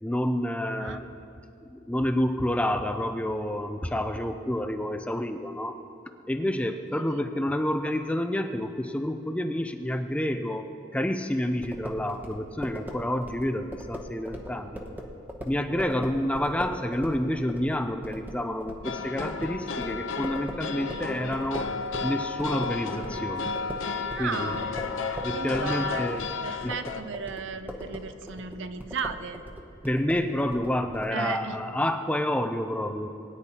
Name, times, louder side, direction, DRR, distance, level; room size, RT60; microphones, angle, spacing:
voice 1, 0.0-1.0 1.7-5.8 6.3-10.7 10.9-14.8 15.5-21.7 22.0-23.5 24.2-24.6 25.2-26.3 26.6-26.8 29.8-33.1, left 1 dB, 5° left, 7 dB, 0.4 m, -29 dB
sound 1, 11.6-22.1 22.4-31.1, equal, 10° right, 0.8 m, -40 dB
sound 2, 18.8-27.0, left 4 dB, 75° left, 0.7 m, -33 dB
voice 2, 20.7-21.0 24.1-24.6 25.3-26.0 26.4-29.4 31.1-31.6, right 5 dB, 65° right, 9 dB, 0.5 m, -35 dB
20.5 x 9.9 x 2.9 m, 2.7 s
head